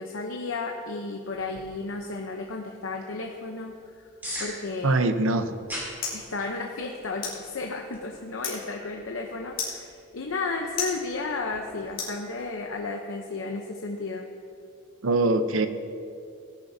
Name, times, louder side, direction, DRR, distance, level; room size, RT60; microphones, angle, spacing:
voice 1, 0.0-3.7 4.4-5.0 6.1-14.3, left 3 dB, 75° left, 1 dB, 0.8 m, -33 dB
sound 1, 1.3-11.9, equal, 10° right, 2.7 m, -44 dB
voice 2, 4.8-5.5 15.0-15.7, right 2 dB, 80° right, 9 dB, 0.7 m, -23 dB
sound 2, 5.2-12.8, left 5 dB, 45° left, 2.9 m, -39 dB
18.0 x 10.5 x 2.7 m, 2.4 s
head